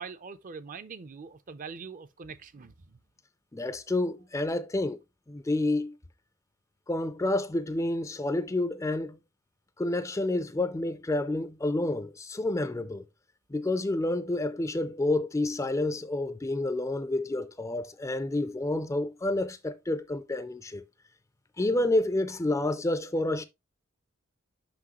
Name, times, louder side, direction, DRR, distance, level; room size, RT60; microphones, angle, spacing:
voice 1, 0.0-3.0, right 5 dB, 40° right, 0.5 m, -43 dB
voice 2, 3.5-5.0 5.3-6.0 6.9-9.2 9.8-13.0 13.5-20.8 21.6-23.4, left 2 dB, 15° left, 0.4 m, -29 dB
6.0 x 5.5 x 2.9 m
head